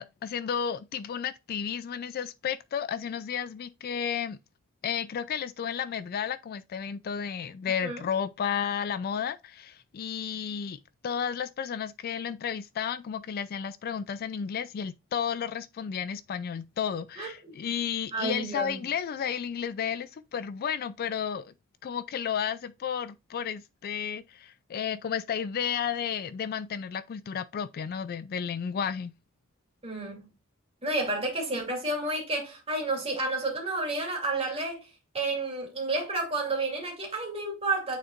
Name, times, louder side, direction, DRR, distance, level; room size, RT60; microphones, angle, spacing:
voice 1, 0.0-4.4 4.8-21.5 21.8-29.1, left 7 dB, 45° left, 0.3 m, -32 dB
voice 2, 17.2-17.5 18.1-18.8 29.8-30.2 30.8-34.9 35.1-38.0, right 2 dB, 30° right, 2.5 m, -30 dB
9.2 x 4.2 x 2.4 m
head